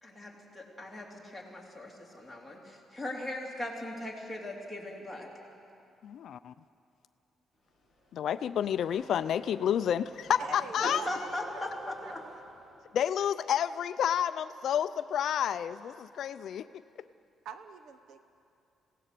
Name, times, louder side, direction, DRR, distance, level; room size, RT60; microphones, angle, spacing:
voice 1, 0.0-5.3 10.8-11.4 11.9-12.2, left 1 dB, ahead, -1 dB, 3.0 m, -39 dB
voice 2, 6.0-6.5 8.1-11.0 12.9-16.7, left 9 dB, 55° left, 13 dB, 0.4 m, -30 dB
Race car auto racing / Accelerating revving vroom, 7.6-13.1, equal, 20° right, 7.5 m, -52 dB
voice 3, 10.4-11.6 12.0-12.4 17.4-18.3, right 6 dB, 65° right, 9 dB, 1.0 m, -43 dB
27.0 x 17.0 x 6.7 m, 2.6 s
cardioid pair, 165°, 0 cm